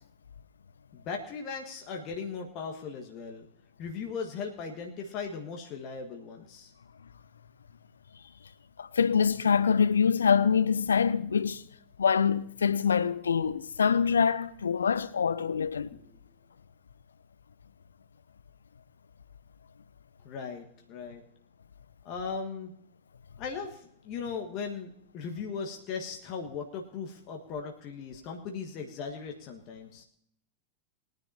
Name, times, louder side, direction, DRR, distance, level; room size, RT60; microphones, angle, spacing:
voice 1, 0.9-3.5 3.8-6.7 15.9-16.2 20.2-21.2 22.0-22.7 23.4-30.0, left 5 dB, 40° left, 1.5 m, -38 dB
voice 2, 8.8-11.6 12.0-15.9, left 6 dB, 70° left, 0.6 m, -25 dB
22.0 x 10.5 x 2.8 m
figure-of-eight pair, 90°, 0 cm